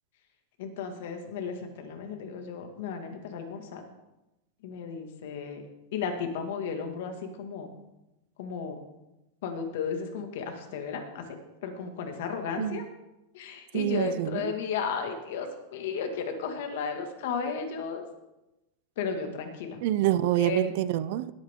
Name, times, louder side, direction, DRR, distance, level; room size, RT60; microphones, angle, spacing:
voice 1, 0.6-3.8 4.6-5.6 5.9-7.7 8.4-8.8 9.4-12.9 13.3-18.1 19.0-19.8 20.4-20.7, left 5 dB, 65° left, 2.0 m, -34 dB
voice 2, 13.7-14.5 19.8-21.3, right 13 dB, 50° right, 0.5 m, -27 dB
19.0 x 8.6 x 3.7 m
supercardioid pair, 170°, 0 cm